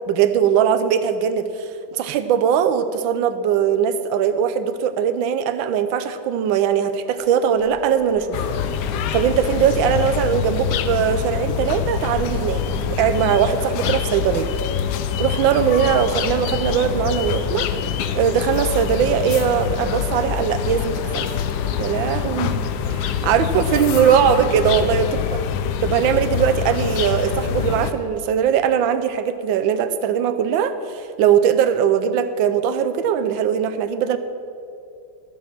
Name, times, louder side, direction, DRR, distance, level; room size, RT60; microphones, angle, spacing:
voice 1, 0.1-8.4 9.1-12.6 13.0-14.5 15.2-17.7 18.1-21.3 21.8-25.2 25.8-34.2, right 8 dB, 80° right, 11 dB, 1.4 m, -20 dB
sound 1, 7.0-22.1, equal, ahead, 2.0 m, -38 dB
Suburban atmos birds trees kids, 8.3-27.9, left 8 dB, 75° left, 1.0 m, -25 dB
13.0 x 7.2 x 6.0 m, 2.5 s
omnidirectional pair, 2.1 m